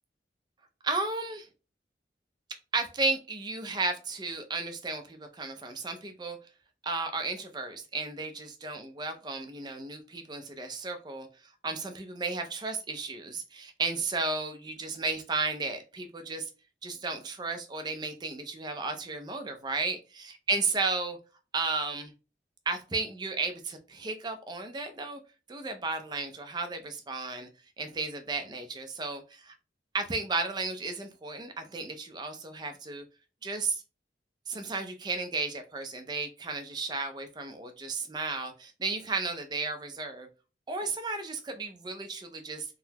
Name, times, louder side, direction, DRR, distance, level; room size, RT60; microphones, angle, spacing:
voice 1, 0.8-1.5 2.7-6.4 6.8-11.3 11.6-16.5 16.8-21.2 21.5-22.1 22.7-25.2 25.5-27.5 27.8-29.5 29.9-33.0 33.4-33.8 34.5-40.3 40.7-42.7, right 3 dB, 25° right, 0.4 m, -34 dB
3.8 x 2.0 x 2.8 m
head